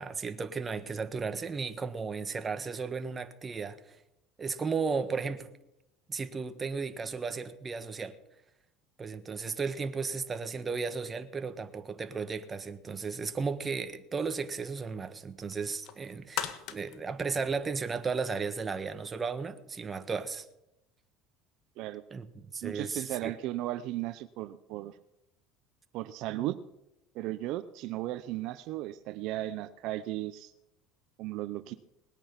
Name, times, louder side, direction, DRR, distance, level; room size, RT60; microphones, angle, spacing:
voice 1, 0.0-4.0 4.4-5.5 6.1-8.2 9.0-20.5 22.1-23.3, right 5 dB, 25° right, 10 dB, 1.3 m, -35 dB
sound 1, 15.5-18.3 18.7-18.8, left 10 dB, 60° left, 1.4 m, -40 dB
voice 2, 22.6-25.0 25.9-26.6 27.1-30.5 31.2-31.7, right 15 dB, 65° right, 13 dB, 0.7 m, -35 dB
20.0 x 9.0 x 5.8 m, 0.88 s
supercardioid pair, 110°, 0 cm